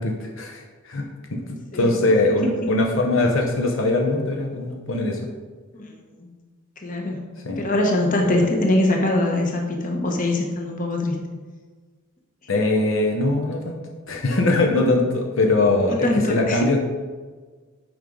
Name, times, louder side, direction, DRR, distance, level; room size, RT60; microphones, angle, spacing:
voice 1, 0.0-5.2 7.4-7.6 8.2-8.3 12.5-13.8 14.1-16.8, left 2 dB, 65° left, 1 dB, 0.9 m, -22 dB
voice 2, 6.8-7.2 7.6-11.2 15.9-16.7, left 1 dB, 40° left, 1 dB, 1.1 m, -22 dB
9.0 x 5.2 x 3.9 m, 1.4 s
head